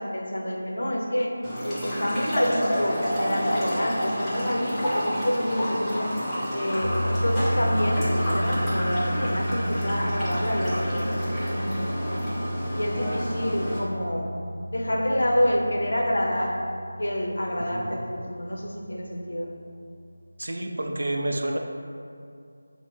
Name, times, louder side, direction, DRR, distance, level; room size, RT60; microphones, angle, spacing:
voice 1, 0.0-1.3 1.6-6.1 6.5-12.3 12.7-14.3 14.7-16.5 17.0-19.5, equal, 70° left, 0 dB, 0.6 m, -28 dB
sound 1, 1.4-13.8, equal, 5° left, 0.6 m, -30 dB
sound 2, 6.8-20.1, equal, 20° left, 1.2 m, -32 dB
voice 2, 17.7-18.0 20.4-21.6, right 1 dB, 60° right, 2 dB, 0.4 m, -29 dB
5.4 x 2.1 x 3.0 m, 2.4 s
figure-of-eight pair, 165°, 0 cm